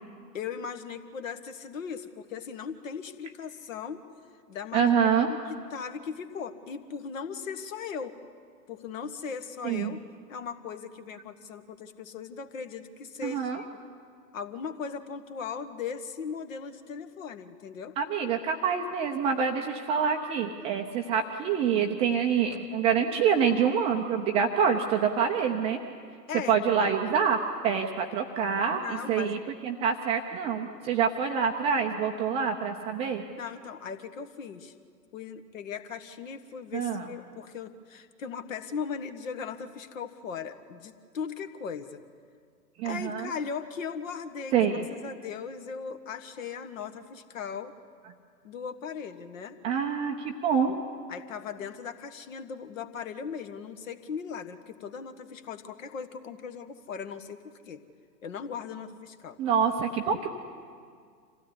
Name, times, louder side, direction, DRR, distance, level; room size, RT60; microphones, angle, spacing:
voice 1, 0.3-4.0 4.5-4.9 5.3-8.1 8.7-10.0 10.3-13.7 14.3-17.9 26.3-26.9 28.7-29.3 33.2-34.7 35.1-42.0 42.8-47.7 48.4-49.6 51.1-57.8 58.2-59.4, left 6 dB, 50° left, 10 dB, 1.6 m, -38 dB
voice 2, 4.7-5.3 9.6-9.9 13.2-13.6 18.0-25.8 26.5-33.2 36.7-37.1 42.8-43.3 44.5-44.9 49.6-50.8 59.4-60.3, right 7 dB, 10° right, 3 dB, 0.6 m, -26 dB
26.0 x 16.0 x 9.8 m, 2.2 s
figure-of-eight pair, 120°, 49 cm